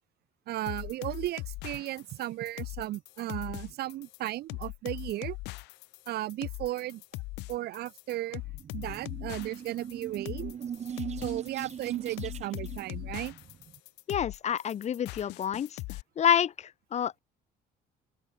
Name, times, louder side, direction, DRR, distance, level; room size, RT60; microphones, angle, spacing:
voice 1, 0.5-5.4 6.1-7.0 7.5-8.4 8.7-10.5 11.2-13.3, right 15 dB, 70° right, 1.0 m, -35 dB
sound 1, 0.7-16.0, left 22 dB, 90° left, 0.5 m, -40 dB
sound 2, 8.4-13.8, right 8 dB, 40° right, 1.5 m, -41 dB
voice 2, 14.1-15.7 16.2-17.2, left 9 dB, 40° left, 0.7 m, -28 dB
open air
cardioid pair, 110°, 17 cm